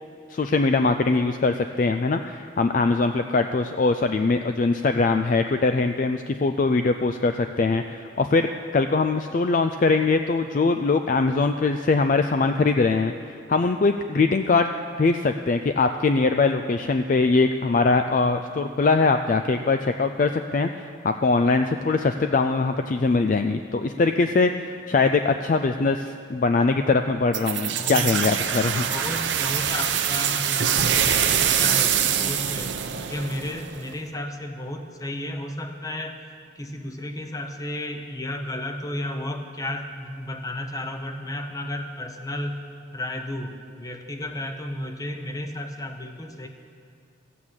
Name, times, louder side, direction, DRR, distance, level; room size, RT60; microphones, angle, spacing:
voice 1, 0.3-14.7 15.0-28.8, left 3 dB, 40° left, 7 dB, 0.3 m, -22 dB
sound 1, 27.3-33.9, right 9 dB, 70° right, 0.8 m, -24 dB
voice 2, 27.8-28.4 28.9-32.7 33.1-36.2 36.6-42.6 42.9-46.5, left 1 dB, 15° left, 6 dB, 0.8 m, -33 dB
14.5 x 8.5 x 7.4 m, 2.4 s
head